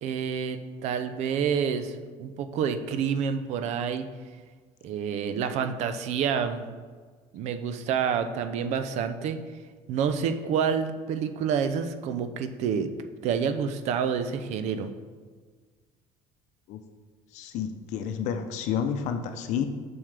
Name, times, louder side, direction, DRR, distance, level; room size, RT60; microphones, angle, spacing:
voice 1, 0.0-4.1 4.8-6.7 7.3-9.4 9.9-12.9 13.2-14.9, right 7 dB, 60° right, 9 dB, 0.5 m, -28 dB
voice 2, 17.3-19.7, left 8 dB, 65° left, 7 dB, 0.7 m, -30 dB
7.2 x 6.2 x 3.4 m, 1.5 s
cardioid pair, 140°, 13 cm